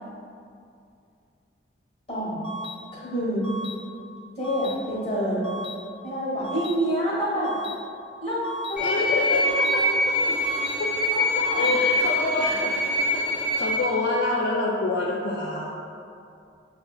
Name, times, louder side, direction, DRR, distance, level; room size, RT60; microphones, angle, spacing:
voice 1, 2.1-2.5 2.9-3.4 4.4-5.4 6.0-7.5 8.2-8.4 8.7-8.8 9.3-10.3 11.1-11.8 12.1-12.6, equal, 30° left, -8 dB, 1.1 m, -28 dB
sound 1, 2.4-2.8 3.4-3.8 4.4-4.8 5.4-5.8 6.4-6.8 7.4-7.8 8.4-8.8 9.4-9.8 10.4-10.8 11.4-11.8, equal, 85° left, 0.7 m, -36 dB
voice 2, 8.8-10.2 10.8-10.9 11.2-12.7 13.1-13.2 13.6-15.7, left 2 dB, 65° left, -3 dB, 0.3 m, -27 dB
sound 2, 8.8-13.8, left 1 dB, 5° right, 0.5 m, -24 dB
6.6 x 2.2 x 2.2 m, 2.5 s
head